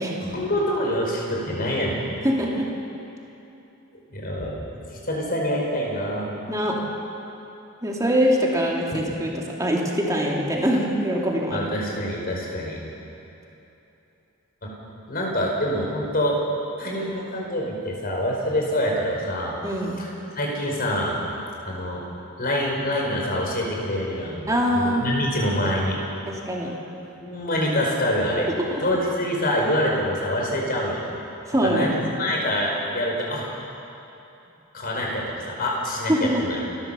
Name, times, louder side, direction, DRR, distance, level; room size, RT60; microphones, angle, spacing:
voice 1, 0.2-2.3 4.1-4.5 5.0-6.3 8.9-9.0 11.5-12.8 14.6-14.7 15.1-16.4 16.8-19.5 20.0-20.1 20.3-21.2 21.7-22.0 22.4-24.4 24.7-26.0 27.1-28.5 28.8-31.0 31.6-33.6 34.7-36.6, left 1 dB, 45° left, -2 dB, 5.1 m, -25 dB
voice 2, 2.2-2.7 6.5-6.8 7.8-11.7 19.6-19.9 24.5-25.1 26.3-26.7 28.5-28.8 31.5-31.9 36.1-36.4, equal, 15° right, -2 dB, 2.9 m, -23 dB
29.0 x 13.0 x 7.1 m, 3.0 s
head